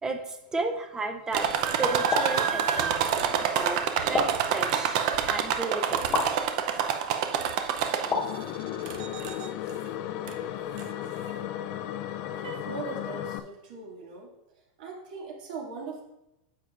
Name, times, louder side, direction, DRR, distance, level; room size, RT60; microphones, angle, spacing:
voice 1, 0.0-1.5 1.8-3.0 3.4-3.8 4.1-5.0 5.3-6.2, right 3 dB, 15° right, 6 dB, 0.7 m, -33 dB
sound 1, 1.3-8.4 8.9-9.5 10.3-10.4 10.8-10.9, right 8 dB, 50° right, 0.6 m, -27 dB
sound 2, 2.1-2.4 4.1-4.5 6.1-6.4 8.1-8.4, left 4 dB, 20° left, 1.1 m, -28 dB
sound 3, 8.0-13.4, left 11 dB, 45° left, 0.4 m, -35 dB
voice 2, 12.3-14.3 14.8-16.0, right 4 dB, 70° right, -1 dB, 2.2 m, -39 dB
9.7 x 7.1 x 2.5 m, 0.90 s
supercardioid pair, 155°, 5 cm